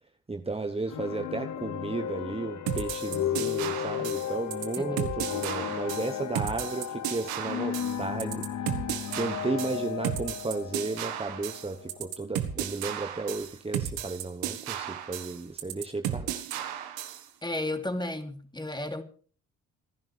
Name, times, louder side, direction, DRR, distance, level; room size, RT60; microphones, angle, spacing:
voice 1, 0.3-8.9 9.2-16.7, right 3 dB, 15° right, 1.2 m, -34 dB
sound 1, 0.9-12.1, left 10 dB, 50° left, 0.9 m, -34 dB
sound 2, 2.7-17.3, right 10 dB, 80° right, 1.6 m, -34 dB
voice 2, 17.4-19.0, left 1 dB, 10° left, 2.9 m, -33 dB
27.5 x 10.5 x 3.4 m
hypercardioid pair, 50°, 36 cm